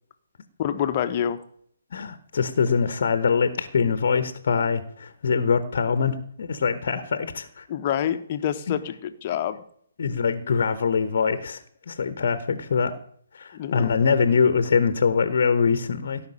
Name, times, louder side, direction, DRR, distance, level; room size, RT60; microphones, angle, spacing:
voice 1, 0.6-1.4 7.7-9.6 13.5-13.9, left 10 dB, 30° left, 9 dB, 1.1 m, -27 dB
voice 2, 1.9-7.6 8.7-8.8 10.0-12.9 13.3-16.2, left 5 dB, 50° left, 11 dB, 1.1 m, -23 dB
16.0 x 6.0 x 8.7 m, 0.63 s
figure-of-eight pair, 135°, 0 cm